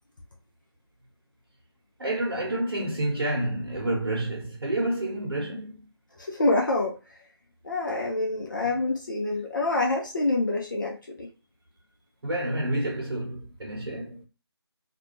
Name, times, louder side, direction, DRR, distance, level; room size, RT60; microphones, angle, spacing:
voice 1, 2.0-5.8 12.2-14.2, right 1 dB, 65° right, 0.9 m, -29 dB
voice 2, 6.2-7.2 7.6-11.3, left 2 dB, 45° left, 0.5 m, -27 dB
2.5 x 2.2 x 3.0 m
figure-of-eight pair, 160°, 14 cm